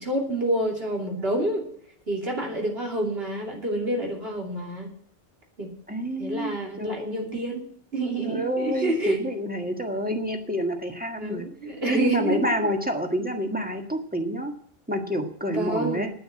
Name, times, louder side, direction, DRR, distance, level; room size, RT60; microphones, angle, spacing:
voice 1, 0.0-1.7 2.1-4.9 5.6-5.7 6.2-9.2 11.2-12.4 15.5-16.1, right 1 dB, 70° right, 0 dB, 3.2 m, -28 dB
voice 2, 5.9-7.4 8.2-11.5 11.9-14.5 14.9-16.1, equal, 10° right, 3 dB, 1.6 m, -28 dB
9.6 x 9.5 x 7.7 m, 0.63 s
omnidirectional pair, 1.1 m